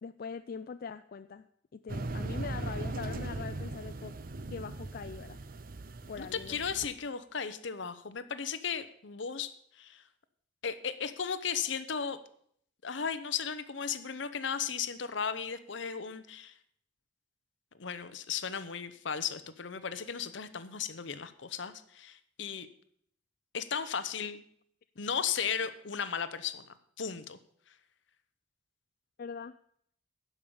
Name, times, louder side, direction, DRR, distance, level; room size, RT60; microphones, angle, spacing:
voice 1, 0.0-1.5 1.7-4.1 4.5-5.4 6.1-6.6 29.2-29.5, left 5 dB, 50° left, 10 dB, 0.4 m, -42 dB
sound 1, 1.9-6.9, right 2 dB, 50° right, 0.7 m, -39 dB
voice 2, 6.2-10.0 10.6-12.2 12.8-16.5 17.8-22.7 23.5-24.4 25.0-26.7 27.0-27.4 27.7-27.8, left 7 dB, 70° left, 13 dB, 0.8 m, -35 dB
12.0 x 5.5 x 8.6 m, 0.65 s
head